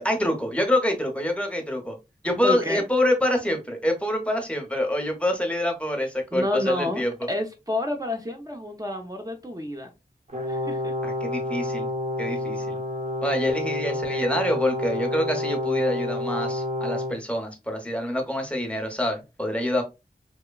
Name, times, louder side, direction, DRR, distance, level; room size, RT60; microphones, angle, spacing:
voice 1, 0.0-2.0 2.2-7.1 11.0-11.9 12.2-12.7 13.2-19.8, left 1 dB, 5° left, 0.8 m, -26 dB
voice 2, 2.4-2.8 6.3-7.0 7.3-9.9 10.5-10.9, left 1 dB, 20° right, 0.6 m, -29 dB
Brass instrument, 10.3-17.2, left 1 dB, 45° right, 0.9 m, -29 dB
2.9 x 2.2 x 2.3 m
wide cardioid pair, 45°, 17 cm